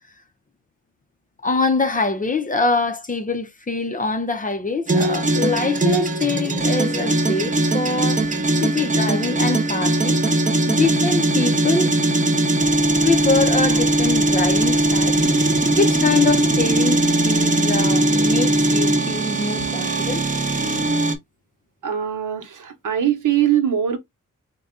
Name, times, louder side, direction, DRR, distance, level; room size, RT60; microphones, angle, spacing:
voice 1, 1.4-10.2 10.7-11.9 13.0-15.2 15.7-20.2, left 3 dB, 25° left, 0.6 m, -24 dB
sound 1, 4.9-21.1, right 2 dB, 25° right, 0.8 m, -20 dB
voice 2, 21.8-24.0, right 10 dB, 70° right, 1.0 m, -21 dB
4.0 x 2.3 x 3.6 m
wide cardioid pair, 130°, 33 cm